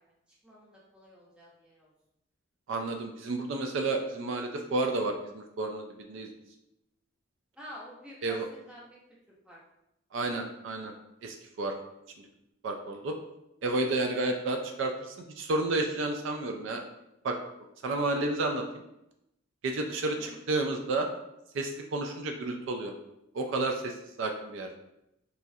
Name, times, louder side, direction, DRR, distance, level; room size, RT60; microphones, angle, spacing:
voice 1, 0.4-1.9 7.5-9.0 9.4-9.6 20.0-20.4, equal, 5° right, -6 dB, 0.6 m, -49 dB
voice 2, 2.7-6.3 8.2-8.4 10.1-10.9 11.2-11.7 12.2-12.3 12.6-13.2 13.6-16.8 17.2-17.4 17.8-18.6 19.6-21.1 21.5-22.9 23.3-24.7, right 2 dB, 65° right, 4 dB, 0.3 m, -31 dB
3.0 x 2.3 x 2.6 m, 0.85 s
head